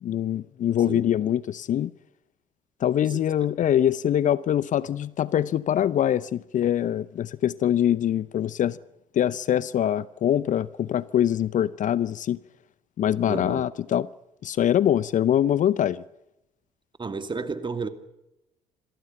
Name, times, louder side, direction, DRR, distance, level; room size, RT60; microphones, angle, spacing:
voice 1, 0.0-1.9 2.8-8.8 9.1-12.4 13.0-14.1 14.4-16.0, left 10 dB, 50° left, 0.8 m, -24 dB
voice 2, 13.3-13.6 17.0-17.9, right 4 dB, 25° right, 2.7 m, -31 dB
27.5 x 23.0 x 5.8 m
hypercardioid pair, 55°, 17 cm